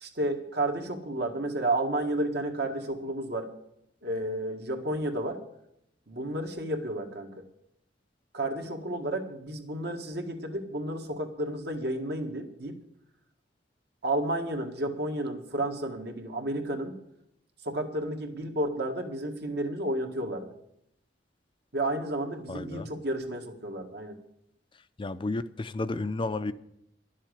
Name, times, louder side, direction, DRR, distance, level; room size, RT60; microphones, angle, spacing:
voice 1, 0.0-3.5 4.0-5.4 6.1-7.4 8.3-12.7 14.0-16.9 17.7-20.5 21.7-24.2, right 1 dB, 65° right, 3 dB, 1.8 m, -31 dB
voice 2, 22.5-22.9 25.0-26.5, left 2 dB, 30° left, 12 dB, 0.5 m, -32 dB
12.0 x 7.4 x 10.0 m, 0.78 s
head